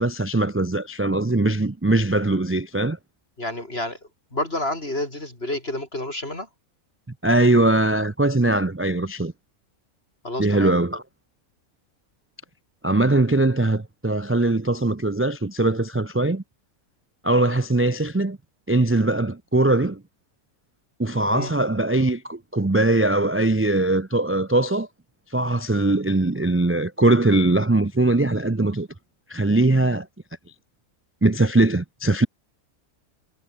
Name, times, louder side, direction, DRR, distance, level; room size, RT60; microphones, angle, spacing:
voice 1, 0.0-3.0 7.2-9.3 10.4-11.0 12.8-16.4 17.2-18.4 18.7-20.0 21.0-24.9 25.3-28.9 29.3-30.1 31.2-32.3, right 2 dB, 15° right, 0.4 m, -21 dB
voice 2, 3.4-4.0 4.3-6.5 10.2-10.7 21.3-21.5, left 1 dB, 45° left, 6.5 m, -29 dB
omnidirectional pair, 1.4 m